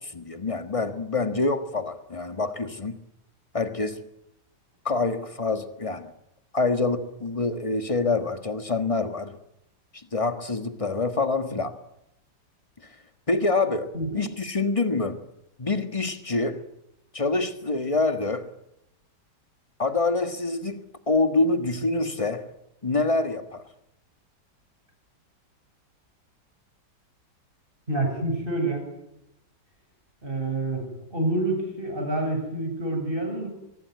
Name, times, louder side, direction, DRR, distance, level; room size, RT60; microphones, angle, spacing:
voice 1, 0.0-3.0 3.5-4.0 4.8-6.1 6.5-9.4 9.9-11.8 13.3-15.2 15.6-16.6 17.1-18.5 19.8-22.5 22.8-23.6, left 3 dB, 20° left, 8 dB, 1.5 m, -26 dB
voice 2, 13.9-14.2 27.9-28.9 30.2-33.5, right 2 dB, 30° right, 4 dB, 7.6 m, -28 dB
23.5 x 20.5 x 9.5 m, 0.86 s
omnidirectional pair, 1.8 m